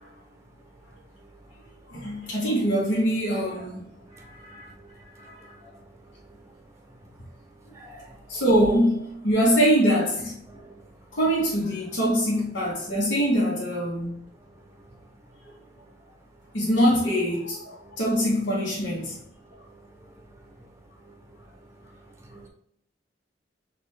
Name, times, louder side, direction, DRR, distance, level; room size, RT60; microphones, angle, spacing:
voice 1, 1.9-3.9 4.2-4.7 5.2-5.7 8.3-10.3 11.2-14.2 15.4-15.5 16.5-19.2, equal, 85° left, 1.2 m, -24 dB
voice 2, 7.8-8.0 10.5-10.7 22.3-22.5, right 1 dB, 15° right, 0.6 m, -46 dB
5.9 x 2.5 x 3.2 m
head